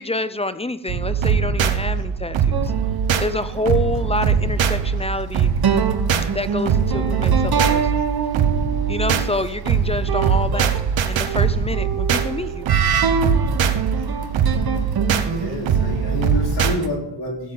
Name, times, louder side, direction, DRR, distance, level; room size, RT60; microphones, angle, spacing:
voice 1, 0.0-2.7 3.2-5.5 6.3-8.0 8.9-10.7 11.1-12.7, left 2 dB, 15° left, 13 dB, 0.5 m, -27 dB
sound 1, 0.9-16.8, right 7 dB, 75° right, 1.1 m, -21 dB
sound 2, 2.5-4.9 5.6-9.4 10.1-16.9, right 6 dB, 55° right, 1.2 m, -26 dB
voice 2, 15.2-17.5, left 1 dB, 60° left, -1 dB, 3.9 m, -28 dB
15.5 x 7.5 x 3.9 m, 0.87 s
cardioid pair, 95°, 45 cm